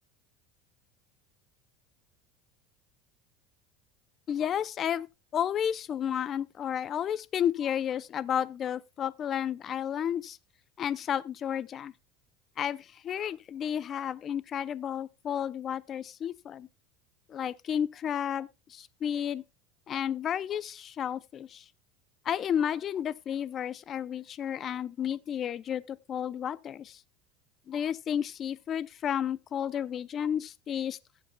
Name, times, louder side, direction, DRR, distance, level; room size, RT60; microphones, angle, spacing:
voice 1, 4.3-5.1 5.3-10.4 10.8-11.9 12.6-16.7 17.3-19.4 19.9-21.6 22.2-27.0 27.7-31.0, left 9 dB, 35° left, 0.5 m, -32 dB
16.5 x 7.4 x 2.2 m
supercardioid pair, 130°, 0 cm